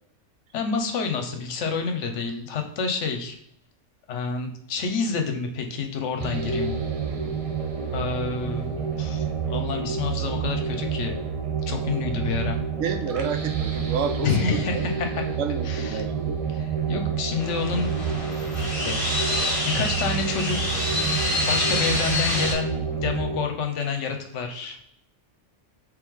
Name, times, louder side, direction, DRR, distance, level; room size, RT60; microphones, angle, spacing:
voice 1, 0.5-3.3 4.1-6.7 7.9-11.1 11.7-12.6 14.2-15.2 15.6-16.1 16.5-17.9 18.8-19.0 19.6-20.9 21.5-24.8, left 5 dB, 70° left, 4 dB, 1.0 m, -28 dB
sound 1, 6.2-23.4, right 6 dB, 45° right, 0.5 m, -29 dB
voice 2, 12.8-14.8 15.4-16.4, right 6 dB, 75° right, 6 dB, 0.9 m, -30 dB
sound 2, 17.4-22.5, left 1 dB, 30° left, 1.1 m, -27 dB
3.3 x 3.2 x 3.5 m, 0.72 s
omnidirectional pair, 1.3 m